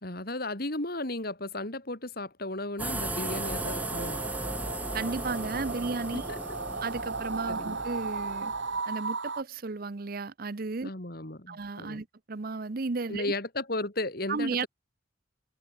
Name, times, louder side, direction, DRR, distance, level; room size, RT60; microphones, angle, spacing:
voice 1, 0.0-4.2 6.3-6.4 7.5-7.8 10.8-12.0 13.1-14.7, left 2 dB, 50° left, 3.1 m, -35 dB
sound 1, 2.8-8.8, right 1 dB, 10° right, 1.5 m, -36 dB
sound 2, 3.2-9.4, right 4 dB, 70° right, 2.1 m, -36 dB
voice 2, 4.9-6.2 6.8-8.5 8.9-10.9 11.5-13.3 14.3-14.7, right 3 dB, 50° right, 0.7 m, -34 dB
head